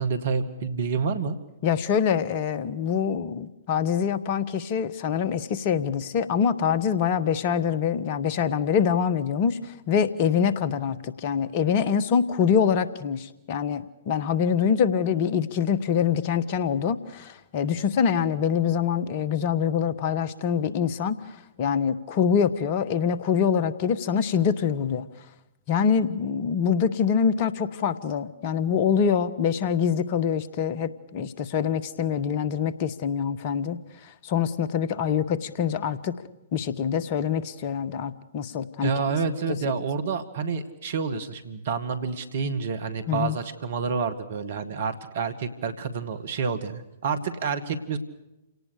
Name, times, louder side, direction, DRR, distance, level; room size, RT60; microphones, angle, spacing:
voice 1, 0.0-1.4 38.8-48.0, right 5 dB, 55° right, 11 dB, 2.3 m, -28 dB
voice 2, 1.6-21.2 21.6-25.1 25.7-33.8 34.2-36.2 36.5-38.9 43.1-43.4, left 7 dB, 40° left, 15 dB, 1.4 m, -25 dB
29.0 x 18.5 x 6.7 m, 0.91 s
figure-of-eight pair, 115°, 0 cm